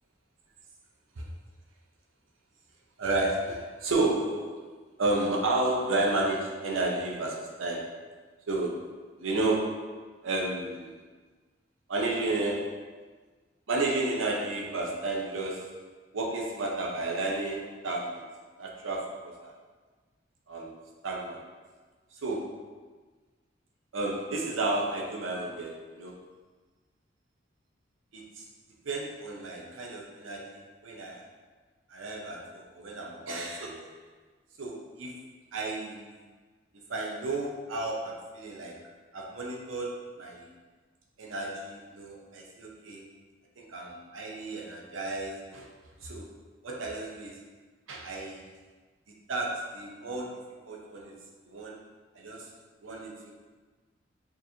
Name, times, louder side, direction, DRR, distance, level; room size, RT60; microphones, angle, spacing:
voice 1, 3.0-8.0 8.5-8.8 9.2-9.9 10.2-11.0 11.9-12.9 13.7-15.8 16.1-18.3 18.6-19.5 20.5-20.8 21.0-21.4 22.2-22.6 23.9-26.1 28.1-28.4 28.8-31.2 31.9-33.9 34.6-35.2 35.5-36.1 36.9-38.8 39.1-40.5 41.2-43.0 43.6-45.7 46.0-46.3 46.6-47.4 47.9-48.4 49.3-51.1 51.5-51.8 52.1-52.5 52.8-53.1, right 2 dB, 85° right, -1 dB, 0.7 m, -32 dB
4.4 x 3.0 x 2.8 m, 1.4 s
head